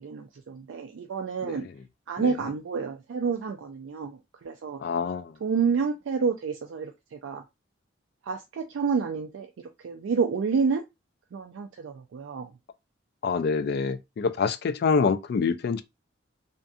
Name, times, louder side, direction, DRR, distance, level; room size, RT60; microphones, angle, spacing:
voice 1, 0.0-1.7 2.1-4.8 5.4-7.4 8.3-10.8 11.3-12.5, right 5 dB, 85° right, 0.3 m, -29 dB
voice 2, 4.8-5.3 13.2-15.8, left 5 dB, 55° left, 0.3 m, -26 dB
2.5 x 2.5 x 2.3 m
head